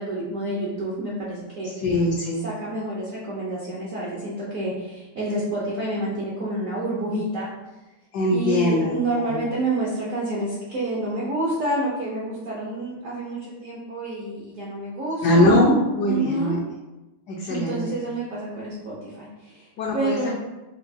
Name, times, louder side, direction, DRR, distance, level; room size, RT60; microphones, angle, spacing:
voice 1, 0.0-1.7 2.4-7.5 8.3-15.7 16.1-16.5 17.5-20.3, right 2 dB, 65° right, -6 dB, 0.8 m, -28 dB
voice 2, 1.8-2.4 8.1-9.0 9.3-9.4 15.2-16.6 17.3-17.8 19.8-20.3, left 1 dB, 75° left, -3 dB, 0.9 m, -21 dB
5.5 x 2.3 x 2.7 m, 1.1 s
omnidirectional pair, 2.3 m